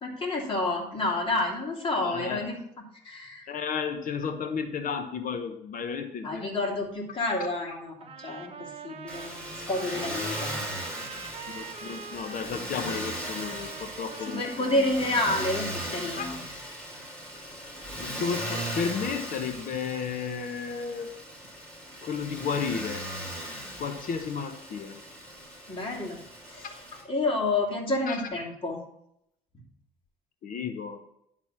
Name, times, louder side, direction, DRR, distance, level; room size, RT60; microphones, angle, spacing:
voice 1, 0.0-3.5 6.2-10.6 14.3-16.4 25.7-26.7 27.1-28.8, left 2 dB, 30° left, -1 dB, 2.9 m, -30 dB
voice 2, 2.0-2.4 3.5-6.6 11.5-14.9 16.2-16.3 18.0-21.1 22.0-23.1 23.8-25.0 28.1-28.3 30.4-31.0, left 6 dB, 55° left, 7 dB, 1.0 m, -33 dB
Trumpet, 8.0-15.7, right 5 dB, 35° right, 1.1 m, -44 dB
Motor vehicle (road), 9.1-27.0, equal, 5° left, 3.4 m, -38 dB
11.0 x 4.0 x 5.9 m, 0.75 s
cardioid pair, 110°, 17 cm